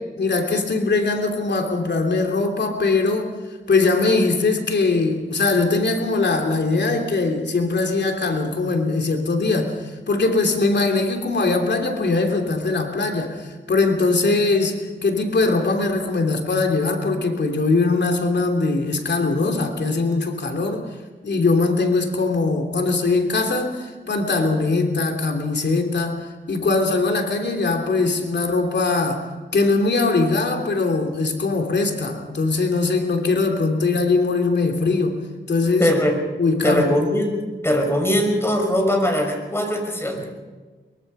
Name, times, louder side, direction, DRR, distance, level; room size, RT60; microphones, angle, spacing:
voice 1, 0.2-3.3 3.7-20.8 21.2-29.3 29.5-35.2 35.5-35.9 36.4-36.9, left 3 dB, 65° left, 4 dB, 3.1 m, -21 dB
voice 2, 35.8-36.1 36.6-37.4 37.6-40.3, equal, 10° left, 2 dB, 5.7 m, -20 dB
23.0 x 23.0 x 5.6 m, 1.4 s
wide cardioid pair, 85°, 20 cm